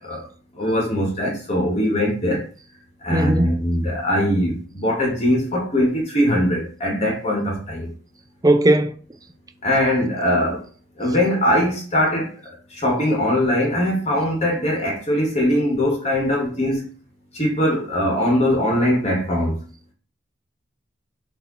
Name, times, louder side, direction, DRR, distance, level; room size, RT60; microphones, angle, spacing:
voice 1, 0.5-2.5 3.0-7.9 9.6-10.6 11.0-16.9 17.3-19.6, left 1 dB, 35° left, 2.0 m, -21 dB
voice 2, 3.1-3.5 8.4-9.0, right 1 dB, 20° right, 0.5 m, -17 dB
7.7 x 3.0 x 4.2 m
head